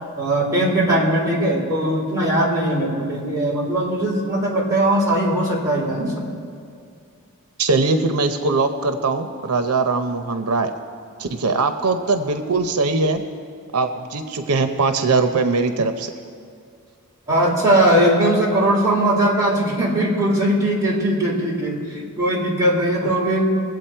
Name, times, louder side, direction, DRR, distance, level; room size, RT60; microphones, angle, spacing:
voice 1, 0.2-6.3 17.3-23.4, right 1 dB, 15° right, -5 dB, 3.1 m, -20 dB
voice 2, 7.6-10.7 11.2-13.2 13.7-16.1 23.0-23.1, right 3 dB, 90° right, 8 dB, 0.7 m, -21 dB
22.5 x 8.0 x 4.5 m, 2.3 s
head